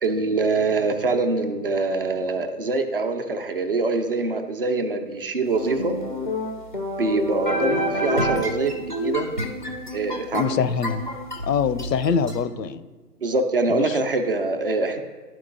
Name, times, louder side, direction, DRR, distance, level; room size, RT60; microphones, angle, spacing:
voice 1, 0.0-5.9 7.0-9.3 9.9-10.6 13.2-15.0, right 3 dB, 40° right, 6 dB, 0.4 m, -24 dB
sound 1, 5.5-12.4, equal, 35° left, 0.4 m, -28 dB
voice 2, 10.3-11.1 11.4-12.8 13.7-14.0, left 6 dB, 80° left, 12 dB, 0.6 m, -24 dB
12.0 x 4.5 x 2.5 m, 1.3 s
hypercardioid pair, 145°, 49 cm